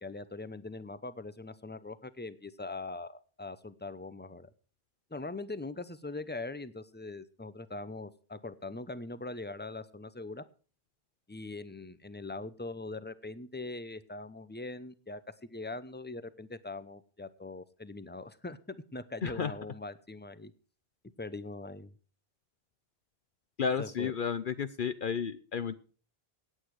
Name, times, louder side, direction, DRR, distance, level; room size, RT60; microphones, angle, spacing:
voice 1, 0.0-4.5 5.1-10.4 11.3-20.5 21.2-22.0 23.8-24.1, left 2 dB, 10° left, 15 dB, 0.8 m, -42 dB
voice 2, 19.2-19.5 23.6-25.7, left 6 dB, 55° left, 13 dB, 0.9 m, -32 dB
17.0 x 8.9 x 4.8 m, 0.39 s
omnidirectional pair, 1.0 m